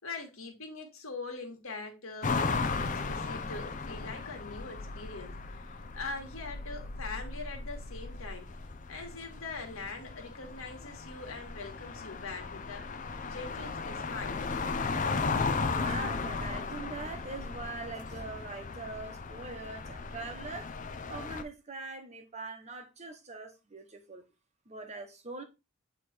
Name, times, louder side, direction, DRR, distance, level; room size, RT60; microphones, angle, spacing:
voice 1, 0.0-5.3 5.6-8.5 8.9-12.8 13.2-14.4, left 3 dB, 65° left, 1.9 m, -42 dB
sound 1, 2.2-21.4, left 4 dB, 35° left, 0.6 m, -36 dB
voice 2, 15.7-20.7 21.1-24.2 24.7-25.4, right 3 dB, 30° right, 1.1 m, -42 dB
8.2 x 3.3 x 4.4 m
head